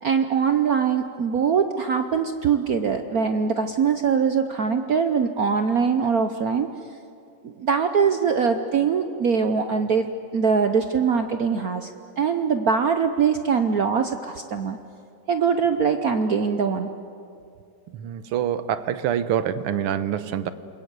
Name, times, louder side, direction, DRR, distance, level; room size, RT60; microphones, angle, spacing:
voice 1, 0.0-6.7 7.4-11.9 12.2-14.8 15.3-16.9, right 6 dB, 60° right, 7 dB, 1.0 m, -22 dB
voice 2, 17.9-20.5, right 9 dB, 90° right, 12 dB, 1.8 m, -26 dB
28.5 x 21.5 x 8.2 m, 2.6 s
omnidirectional pair, 2.4 m